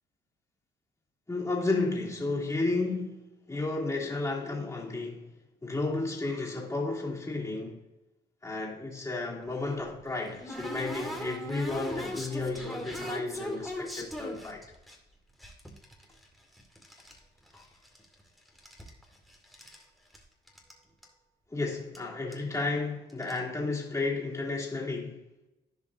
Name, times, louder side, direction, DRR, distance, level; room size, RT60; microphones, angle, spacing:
voice 1, 1.3-5.3 5.6-7.8 8.4-14.6 17.5-17.7 21.5-25.2, left 3 dB, 15° left, 3.0 m, -32 dB
sound 1, 9.5-15.0 15.4-17.2 17.5-18.2 18.5-19.8 20.1-20.2 20.5-20.7 21.0-21.1 21.9-22.0 22.3-22.6 23.1-23.4, left 1 dB, ahead, 2.1 m, -40 dB
15.5 x 5.2 x 2.7 m
cardioid pair, 90°, 20 cm